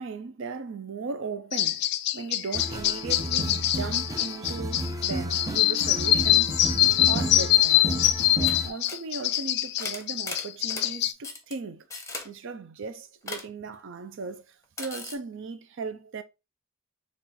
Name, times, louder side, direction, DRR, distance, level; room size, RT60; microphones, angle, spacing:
voice 1, 0.0-6.6 7.1-7.9 8.4-11.9 12.2-16.2, right 4 dB, 65° right, 0.5 m, -37 dB
sound 1, 1.5-11.1, left 13 dB, 50° left, 0.3 m, -24 dB
sound 2, 2.5-8.7, right 1 dB, 15° right, 0.5 m, -32 dB
sound 3, 7.7-7.8 8.0-8.2 8.4-8.6 8.9-9.0 9.8-10.9 11.2-11.5 11.9-12.3 13.3-13.5 14.8-15.1, left 3 dB, 15° left, 0.8 m, -37 dB
4.2 x 2.4 x 3.8 m
head